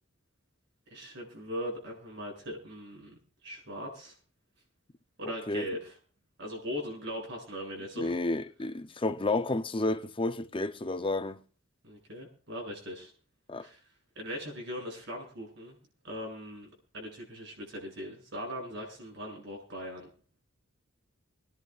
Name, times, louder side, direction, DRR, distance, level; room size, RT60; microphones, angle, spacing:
voice 1, 0.9-3.2 3.4-4.1 5.2-6.0 6.4-8.2 11.8-13.1 13.6-13.8 14.2-15.8 16.0-16.7 16.9-20.1, equal, 60° right, 7.3 m, -40 dB
voice 2, 8.0-11.4 13.5-13.7, left 2 dB, 25° left, 0.7 m, -31 dB
27.5 x 10.5 x 2.5 m
head